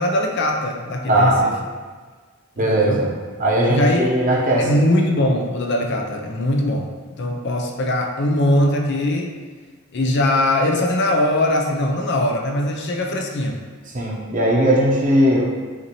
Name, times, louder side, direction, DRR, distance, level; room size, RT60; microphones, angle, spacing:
voice 1, 0.0-1.5 2.6-3.0 3.7-4.1 4.6-6.9 7.2-9.3 9.9-13.6, left 1 dB, 55° left, 1 dB, 0.5 m, -21 dB
voice 2, 1.1-1.4 2.6-3.1 3.4-4.8 13.9-15.4, right 1 dB, 40° right, -3 dB, 0.8 m, -18 dB
5.8 x 2.7 x 2.9 m, 1.5 s
head